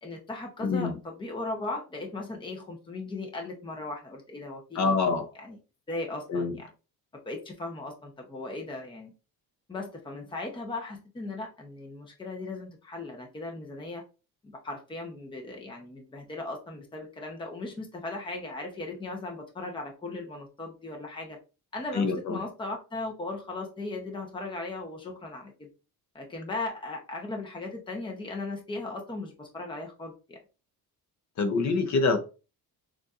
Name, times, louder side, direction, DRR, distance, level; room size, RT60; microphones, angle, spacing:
voice 1, 0.0-5.0 5.4-5.6 5.9-6.7 7.3-9.1 9.7-14.0 14.4-21.4 21.7-25.7 26.1-30.4, left 2 dB, 15° left, 0.7 m, -37 dB
voice 2, 0.6-1.0 4.7-5.3 6.3-6.6 21.9-22.4 31.4-32.2, left 4 dB, 50° left, 0.7 m, -25 dB
6.6 x 2.5 x 2.4 m
cardioid pair, 170°, 37 cm